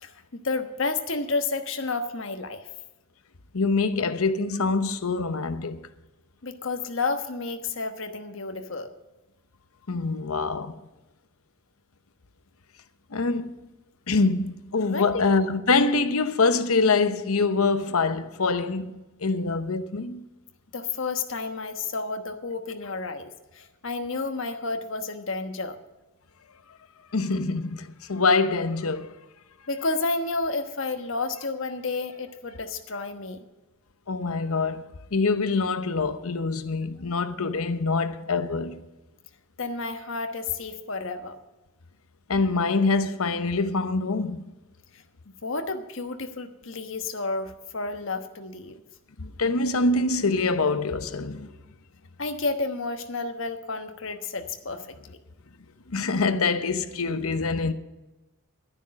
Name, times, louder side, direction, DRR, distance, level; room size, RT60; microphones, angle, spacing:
voice 1, 0.0-2.7 6.4-8.9 14.9-15.3 20.7-25.8 29.7-33.4 39.6-41.3 44.9-45.0 45.4-48.8 52.2-55.0, left 3 dB, 65° left, 1.2 m, -31 dB
voice 2, 3.5-5.8 9.9-10.8 13.1-13.5 14.1-20.3 27.1-29.1 34.1-38.8 42.3-44.5 49.2-51.5 55.9-57.7, left 3 dB, 90° left, 0.9 m, -25 dB
12.0 x 10.0 x 6.4 m
head